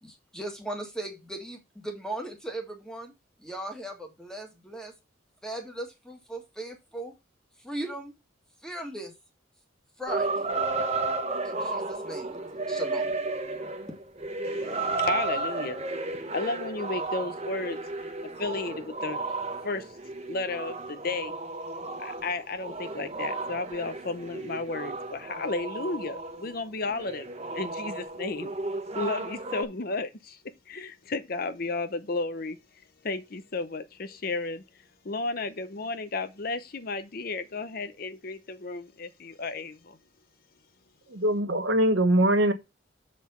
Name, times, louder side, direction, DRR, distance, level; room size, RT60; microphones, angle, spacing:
voice 1, 0.0-3.1 3.4-4.9 5.4-7.1 7.6-8.1 8.6-9.1 10.0-10.5 11.4-12.4 12.7-13.2, right 1 dB, 5° left, 1.7 m, -38 dB
sound 1, 10.1-26.6 26.8-29.6, right 3 dB, 30° right, 1.1 m, -33 dB
voice 2, 14.4-15.8 16.3-18.1 18.4-19.2 19.6-19.9 20.3-21.3 22.0-28.6 28.9-30.4 30.7-32.6 33.0-34.6 35.0-40.0, left 3 dB, 50° left, 0.7 m, -33 dB
voice 3, 41.1-42.5, right 1 dB, 65° right, 1.1 m, -22 dB
7.3 x 4.2 x 5.6 m
head